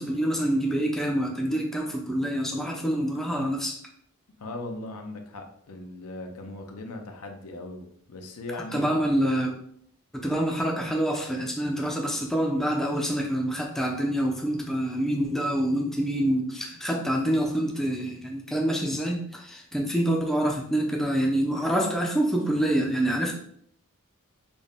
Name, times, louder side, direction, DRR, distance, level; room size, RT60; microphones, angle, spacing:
voice 1, 0.0-3.8 8.7-9.6 10.1-23.3, right 1 dB, ahead, 0 dB, 0.4 m, -26 dB
voice 2, 4.4-8.9, left 2 dB, 75° left, 4 dB, 0.6 m, -38 dB
4.0 x 2.1 x 3.5 m, 0.66 s
head